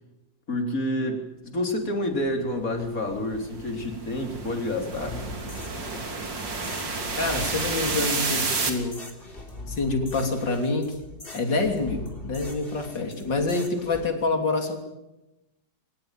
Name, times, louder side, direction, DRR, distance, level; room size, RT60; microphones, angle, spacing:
voice 1, 0.5-5.3, left 1 dB, 50° left, 4 dB, 4.1 m, -29 dB
sound 1, 2.7-8.7, right 3 dB, 85° right, 3.8 m, -30 dB
sound 2, 4.9-14.1, left 2 dB, 30° left, 3.8 m, -41 dB
voice 2, 7.2-9.0 9.7-10.9 11.3-14.8, left 3 dB, 80° left, 5 dB, 3.8 m, -27 dB
23.5 x 19.5 x 9.1 m, 0.95 s
omnidirectional pair, 1.9 m